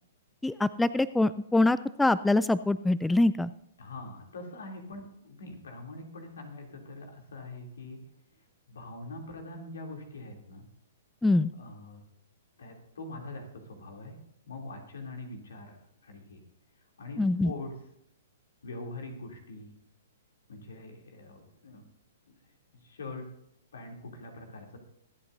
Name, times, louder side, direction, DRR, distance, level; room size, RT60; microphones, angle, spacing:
voice 1, 0.4-3.5 11.2-11.5 17.2-17.5, left 2 dB, 5° left, 16 dB, 0.3 m, -24 dB
voice 2, 3.8-8.0 8.7-10.6 11.6-12.0 12.6-14.2 14.4-15.8 16.0-16.4 17.0-17.7 18.6-19.7 20.5-21.9 22.8-23.2 23.7-24.8, left 2 dB, 75° left, 2 dB, 3.0 m, -43 dB
24.0 x 8.7 x 2.7 m, 0.78 s
hypercardioid pair, 120°, 0 cm